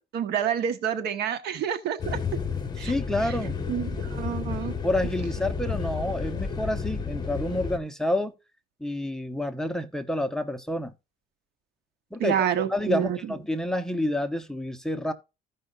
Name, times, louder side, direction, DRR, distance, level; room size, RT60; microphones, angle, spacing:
voice 1, 0.1-2.2 2.8-3.0 3.2-3.3 3.7-4.7 12.2-13.3, right 9 dB, 75° right, 1.2 m, -28 dB
sound 1, 2.0-7.8, left 5 dB, 25° left, 1.5 m, -31 dB
voice 2, 2.8-3.6 4.8-8.3 8.8-10.9 12.1-12.4 12.7-15.1, left 1 dB, 5° left, 0.9 m, -28 dB
15.0 x 5.4 x 2.6 m
cardioid pair, 110°, 17 cm